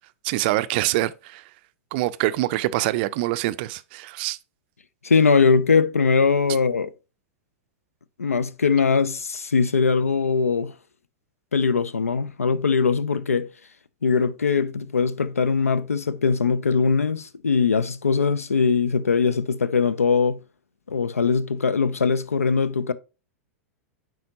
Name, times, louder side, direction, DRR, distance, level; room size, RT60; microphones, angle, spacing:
voice 1, 0.2-1.4 1.9-4.4, right 17 dB, 45° right, 0.4 m, -25 dB
voice 2, 5.0-6.9 8.2-10.7 11.5-13.5 14.0-20.4 20.9-22.9, left 5 dB, 75° left, 0.5 m, -21 dB
9.2 x 3.9 x 2.7 m
figure-of-eight pair, 95°, 8 cm